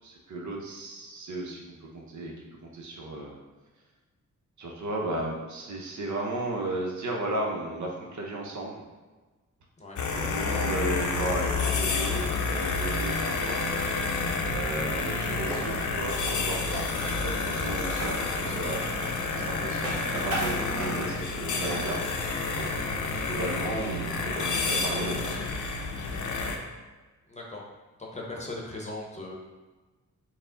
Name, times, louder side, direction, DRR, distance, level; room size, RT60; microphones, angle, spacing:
voice 1, 0.0-2.3 2.6-3.3 4.6-8.8 10.1-16.6 17.0-18.8 19.3-22.0 23.2-25.6, right 2 dB, 65° right, -1 dB, 0.8 m, -35 dB
sound 1, 9.9-26.6, left 3 dB, 70° left, 0.6 m, -29 dB
sound 2, 15.3-23.4, right 1 dB, 50° right, 1.4 m, -38 dB
voice 2, 27.3-27.6 28.0-29.3, left 2 dB, 20° left, -2 dB, 0.8 m, -39 dB
4.6 x 2.1 x 3.7 m, 1.3 s
cardioid pair, 90°, 31 cm